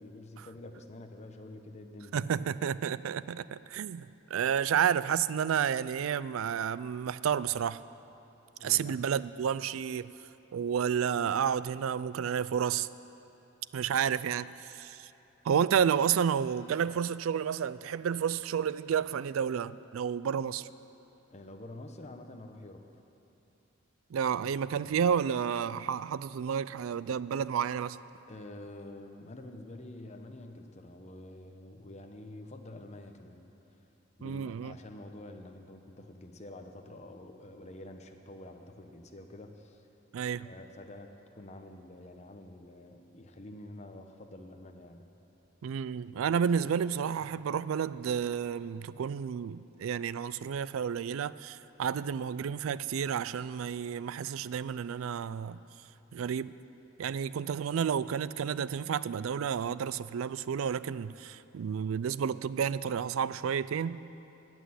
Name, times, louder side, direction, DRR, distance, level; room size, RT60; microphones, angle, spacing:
voice 1, 0.0-2.1 8.6-9.0 21.3-22.8 24.8-25.0 28.3-33.5 34.2-39.8 40.4-45.0 47.2-47.3, left 1 dB, 35° left, 0.9 m, -48 dB
voice 2, 2.1-7.8 8.6-10.1 10.5-12.9 13.7-15.1 15.4-20.7 24.1-28.0 34.2-34.7 40.1-40.5 45.6-55.6 56.1-56.5 57.0-64.0, right 7 dB, 80° right, 0.4 m, -31 dB
16.0 x 6.3 x 9.5 m
head